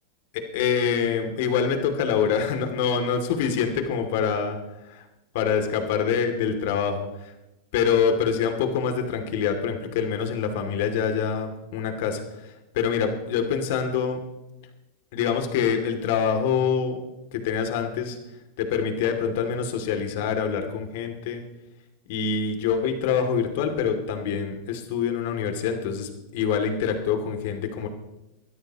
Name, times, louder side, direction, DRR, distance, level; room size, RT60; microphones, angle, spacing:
voice 1, 0.3-4.6 4.8-5.0 5.3-7.3 7.7-14.2 15.1-17.0 17.3-18.2 18.6-21.4 22.1-27.9, left 7 dB, 60° left, 5 dB, 2.7 m, -25 dB
22.5 x 13.5 x 3.0 m, 0.94 s
hypercardioid pair, 105°, 0 cm